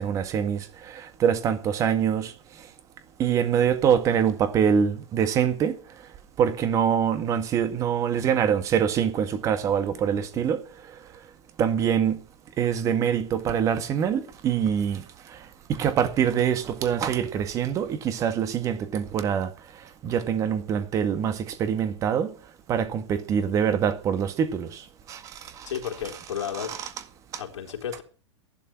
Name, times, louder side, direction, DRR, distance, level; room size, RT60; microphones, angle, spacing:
voice 1, 0.0-2.3 3.2-5.8 6.4-10.6 11.6-12.2 12.6-15.0 15.7-19.5 20.0-22.3 22.7-24.8 25.1-25.2 25.6-25.7 26.6-26.9, right 8 dB, 20° right, 1.9 m, -24 dB
voice 2, 25.6-26.8 27.4-28.0, left 9 dB, 80° left, 3.8 m, -33 dB
13.5 x 12.0 x 6.0 m
supercardioid pair, 160°, 15 cm